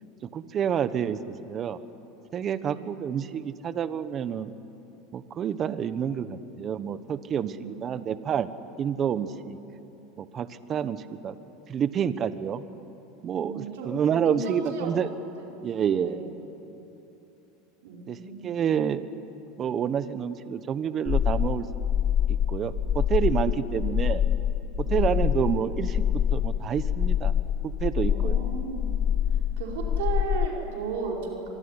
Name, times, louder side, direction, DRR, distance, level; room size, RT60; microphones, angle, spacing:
voice 1, 0.2-1.8 2.3-4.5 5.1-8.5 8.8-9.6 10.2-11.4 11.7-12.6 13.2-15.1 15.6-16.2 18.1-19.1 19.6-21.7 22.5-24.2 24.8-27.3 27.8-28.4, right 8 dB, 30° right, 13 dB, 1.1 m, -28 dB
voice 2, 7.3-8.0 13.3-13.9 14.2-14.9 15.4-15.6 15.9-16.2 17.8-18.6 24.8-25.1 28.0-29.0 29.6-31.5, right 4 dB, 80° right, -1 dB, 4.9 m, -35 dB
sound 1, 21.1-30.5, left 9 dB, 30° left, 0.6 m, -25 dB
25.0 x 23.0 x 9.9 m, 2.9 s
supercardioid pair, 135°, 0 cm